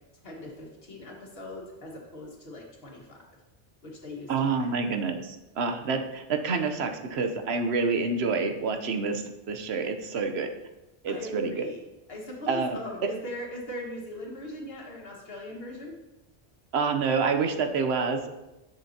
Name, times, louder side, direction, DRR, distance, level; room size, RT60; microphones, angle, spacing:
voice 1, 0.2-3.2 3.8-4.7 11.1-11.8 12.1-16.0, left 1 dB, 70° left, -2 dB, 1.9 m, -40 dB
voice 2, 4.3-10.5 11.0-11.7 12.5-12.8 16.7-18.3, right 4 dB, 85° right, 6 dB, 1.0 m, -28 dB
9.9 x 7.0 x 2.8 m, 1.0 s
omnidirectional pair, 1.1 m